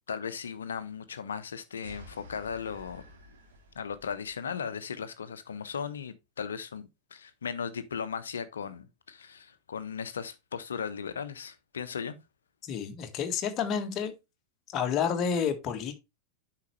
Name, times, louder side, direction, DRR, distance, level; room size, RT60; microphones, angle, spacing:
voice 1, 0.1-3.0 3.7-12.2, left 7 dB, 70° left, 0.9 m, -37 dB
sound 1, 1.8-4.4, left 1 dB, 65° right, 2.7 m, -51 dB
voice 2, 12.6-14.1 14.7-16.0, left 7 dB, 35° left, 1.6 m, -30 dB
8.4 x 5.8 x 3.2 m
figure-of-eight pair, 90°, 0 cm